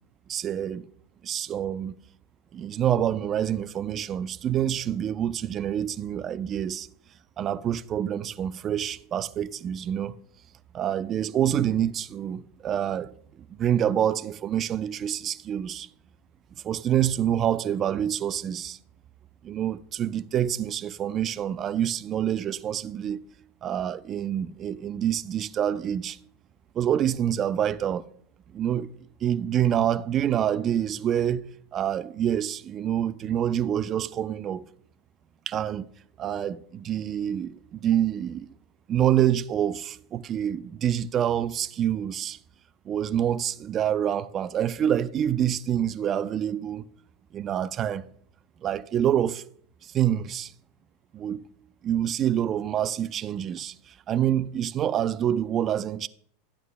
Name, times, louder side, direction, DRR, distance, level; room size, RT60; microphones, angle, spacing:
voice 1, 0.3-0.9 1.2-1.9 2.5-6.9 7.4-10.1 10.7-15.9 16.6-18.8 19.4-23.3 23.6-26.2 26.8-28.0 28.5-28.9 29.2-31.5 31.7-34.6 35.5-35.9 36.2-38.5 38.9-42.4 42.9-46.8 47.3-48.0 48.6-49.4 49.9-50.5 51.1-51.4 51.8-56.1, right 10 dB, 35° right, 0.5 m, -27 dB
12.5 x 8.9 x 2.3 m
hypercardioid pair, 105°, 0 cm